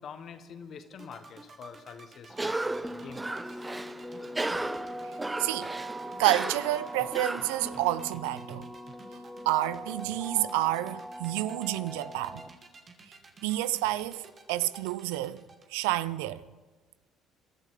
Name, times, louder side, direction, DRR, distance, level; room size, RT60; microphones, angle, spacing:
voice 1, 0.0-3.6 4.5-4.9, left 6 dB, 55° left, 1.4 m, -46 dB
sound 1, 0.9-15.7, right 4 dB, 45° right, 1.9 m, -52 dB
Cough, 2.3-8.1, right 2 dB, 15° right, 0.5 m, -35 dB
sound 2, 2.8-12.5, equal, ahead, 1.5 m, -41 dB
voice 2, 5.4-5.7 6.2-8.7 9.5-12.4 13.4-15.4 15.7-16.4, right 15 dB, 85° right, 0.4 m, -29 dB
27.0 x 12.0 x 3.9 m
hypercardioid pair, 65°, 0 cm